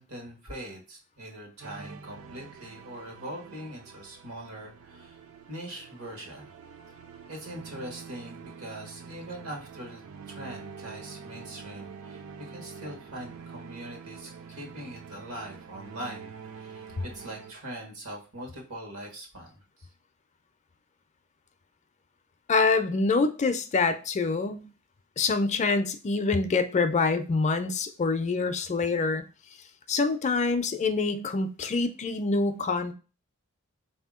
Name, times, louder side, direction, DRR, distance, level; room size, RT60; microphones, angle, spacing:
voice 1, 0.0-5.2 5.5-6.5 7.3-10.0 10.3-19.9, right 1 dB, 85° right, 1 dB, 1.3 m, -42 dB
sound 1, 1.6-17.5, right 6 dB, 65° right, 0.5 m, -46 dB
voice 2, 22.5-24.7 25.2-29.2 29.9-32.9, left 4 dB, 30° left, 8 dB, 0.4 m, -26 dB
4.0 x 2.7 x 3.6 m, 0.34 s
head